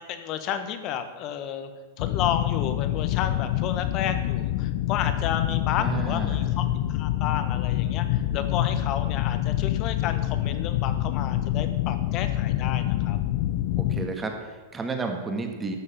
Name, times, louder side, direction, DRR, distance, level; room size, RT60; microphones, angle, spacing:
voice 1, 0.1-1.7 2.0-13.2, left 9 dB, 40° left, 9 dB, 1.3 m, -32 dB
sound 1, 2.0-14.1, left 13 dB, 55° left, 0.4 m, -26 dB
voice 2, 5.8-6.5 13.8-15.8, right 3 dB, 15° right, 4 dB, 1.7 m, -32 dB
12.5 x 6.5 x 7.3 m, 1.4 s
supercardioid pair, 140°, 0 cm